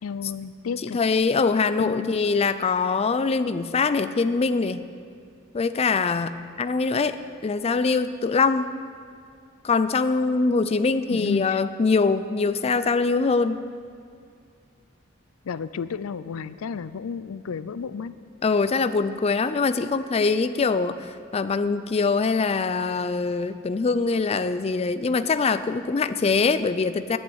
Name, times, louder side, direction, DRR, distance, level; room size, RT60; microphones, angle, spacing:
voice 1, 0.0-1.0 1.8-2.1 11.1-11.6 15.4-18.1 19.9-20.0, left 6 dB, 90° left, 15 dB, 0.4 m, -32 dB
voice 2, 0.8-4.9 5.5-7.2 7.4-8.7 9.6-13.6 18.4-27.2, left 4 dB, 30° left, 12 dB, 0.4 m, -23 dB
11.0 x 8.9 x 8.6 m, 2.2 s
head